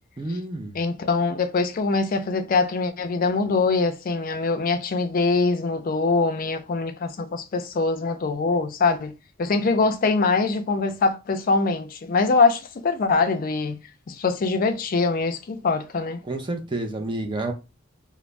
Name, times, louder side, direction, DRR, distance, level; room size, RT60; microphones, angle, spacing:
voice 1, 0.2-0.8 16.2-17.5, right 2 dB, 25° right, 0.5 m, -29 dB
voice 2, 0.8-9.1 9.4-16.2, left 4 dB, 45° left, 0.4 m, -23 dB
2.5 x 2.0 x 3.2 m
head